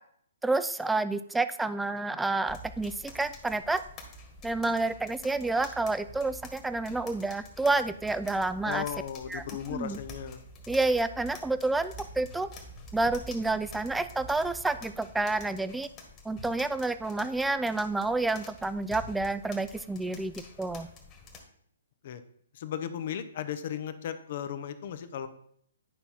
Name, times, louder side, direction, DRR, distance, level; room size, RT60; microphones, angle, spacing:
voice 1, 0.4-3.8 4.4-8.8 9.3-9.4 9.7-10.0 10.7-12.5 12.9-15.9 16.3-20.3 20.6-20.9, right 2 dB, 5° right, 12 dB, 0.4 m, -29 dB
sound 1, 2.5-21.4, left 1 dB, 20° left, 1.7 m, -48 dB
voice 2, 8.6-10.4 22.0-22.2 22.5-25.3, left 9 dB, 45° left, 11 dB, 0.8 m, -36 dB
10.5 x 5.5 x 4.3 m, 0.66 s
figure-of-eight pair, 125°, 0 cm